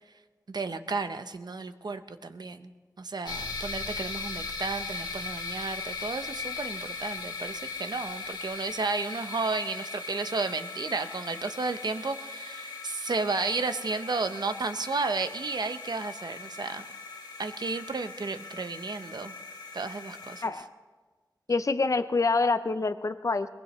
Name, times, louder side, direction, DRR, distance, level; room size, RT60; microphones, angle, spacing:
voice 1, 0.5-2.7 3.0-16.8 17.4-19.3 19.7-20.4, right 3 dB, 75° right, 9 dB, 0.8 m, -33 dB
sound 1, 3.3-20.5, left 4 dB, 85° left, 1.5 m, -39 dB
voice 2, 21.5-23.5, left 3 dB, 50° left, 11 dB, 0.6 m, -26 dB
22.5 x 19.5 x 3.2 m, 1.4 s
wide cardioid pair, 55°, 7 cm